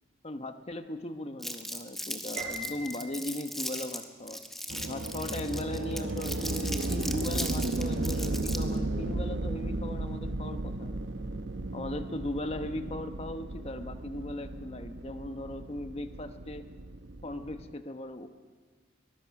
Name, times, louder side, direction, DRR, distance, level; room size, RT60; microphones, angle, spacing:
voice 1, 0.2-4.4 4.8-11.0 11.7-16.7 17.2-18.3, left 1 dB, 35° left, 8 dB, 1.0 m, -38 dB
Crumpling crinkling, 1.4-8.8, equal, ahead, 1.3 m, -38 dB
Piano, 2.4-3.7, right 1 dB, 45° right, 6.7 m, -40 dB
sound 1, 4.7-17.7, right 2 dB, 75° right, 0.9 m, -35 dB
23.0 x 20.0 x 6.0 m, 1.5 s
head